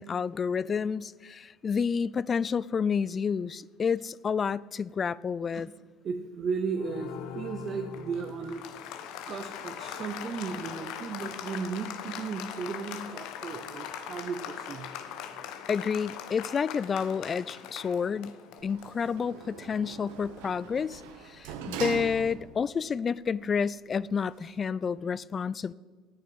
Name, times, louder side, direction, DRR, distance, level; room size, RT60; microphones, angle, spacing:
voice 1, 0.0-5.7 15.7-25.7, left 6 dB, 35° left, 0.3 m, -30 dB
voice 2, 6.0-8.9 9.3-14.9 15.2-15.6, right 5 dB, 45° right, 0.9 m, -35 dB
Applause, 6.7-21.1, left 9 dB, 75° left, 1.0 m, -41 dB
Sliding door, 18.6-22.7 23.2-23.3, right 7 dB, 85° right, 1.1 m, -41 dB
9.4 x 8.9 x 7.6 m
supercardioid pair, 90°, 0 cm